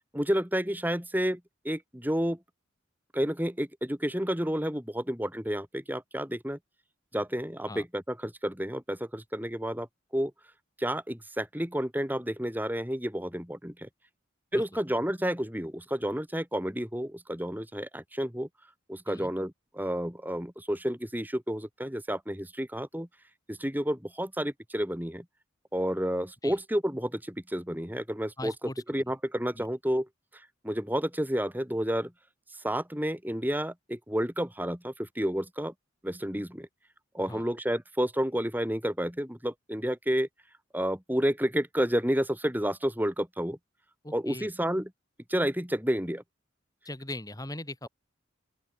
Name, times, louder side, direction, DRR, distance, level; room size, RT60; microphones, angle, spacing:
voice 1, 0.1-1.4 1.6-2.4 3.1-6.6 7.1-9.9 10.1-10.3 10.8-13.9 14.5-18.5 18.9-23.1 23.5-25.2 25.7-28.5 28.9-30.1 30.6-32.1 32.6-35.7 36.0-36.7 37.1-40.3 40.7-43.6 44.1-44.9 45.3-46.2, equal, 10° right, 4.9 m, -30 dB
voice 2, 28.4-28.8 29.5-29.7 37.2-37.4 44.0-44.5 46.9-47.9, left 1 dB, 20° left, 3.8 m, -40 dB
open air
head